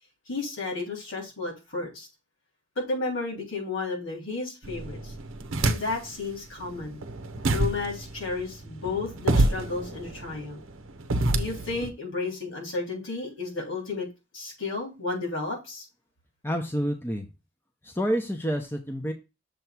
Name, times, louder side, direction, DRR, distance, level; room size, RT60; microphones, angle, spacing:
voice 1, 0.3-2.1 2.8-5.1 5.6-7.0 7.5-10.6 11.3-14.1 14.3-15.9, left 3 dB, 80° left, 3.5 m, -32 dB
sound 1, 4.6-6.2 6.6-11.9, right 2 dB, 80° right, 0.7 m, -28 dB
voice 2, 16.4-17.3 17.8-19.1, equal, 10° left, 0.8 m, -28 dB
6.8 x 3.0 x 6.0 m
head